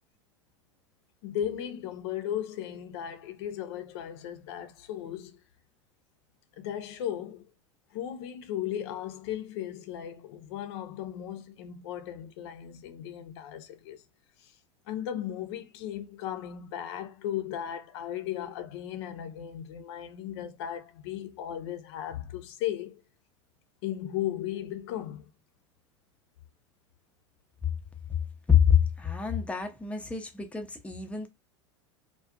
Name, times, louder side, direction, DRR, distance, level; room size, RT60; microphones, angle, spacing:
voice 1, 1.2-5.4 6.6-7.4 7.9-14.0 14.4-14.5 14.9-23.0 23.8-25.3, left 11 dB, 60° left, 0.5 m, -36 dB
voice 2, 28.5-31.3, left 8 dB, 10° left, 0.5 m, -25 dB
2.4 x 2.2 x 2.4 m
figure-of-eight pair, 85°, 16 cm